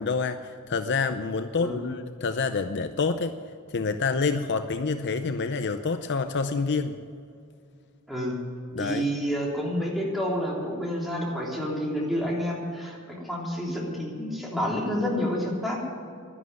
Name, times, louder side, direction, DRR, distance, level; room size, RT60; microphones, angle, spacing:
voice 1, 0.0-3.3 3.7-6.9 8.7-9.1, left 4 dB, 50° left, 9 dB, 0.6 m, -27 dB
voice 2, 1.5-1.9 8.1-8.4 8.8-15.8, equal, ahead, -4 dB, 3.4 m, -29 dB
11.5 x 11.5 x 9.6 m, 2.3 s
head